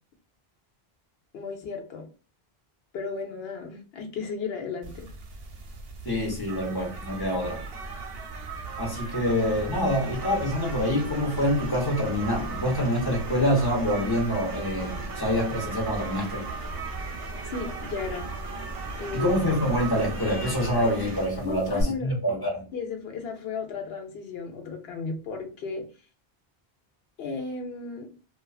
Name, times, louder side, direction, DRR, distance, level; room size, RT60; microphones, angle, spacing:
voice 1, 1.3-2.1 2.9-5.1 17.5-18.3 19.0-19.4 21.4-22.1 22.7-25.8 27.2-28.1, left 4 dB, 75° left, 0.9 m, -34 dB
sound 1, 4.8-21.8, right 4 dB, 75° right, 0.8 m, -37 dB
voice 2, 6.0-7.6 8.8-16.5 19.1-22.6, equal, 25° left, 0.9 m, -26 dB
sound 2, 9.2-21.3, right 1 dB, 25° right, 0.5 m, -40 dB
2.4 x 2.3 x 2.3 m
omnidirectional pair, 1.0 m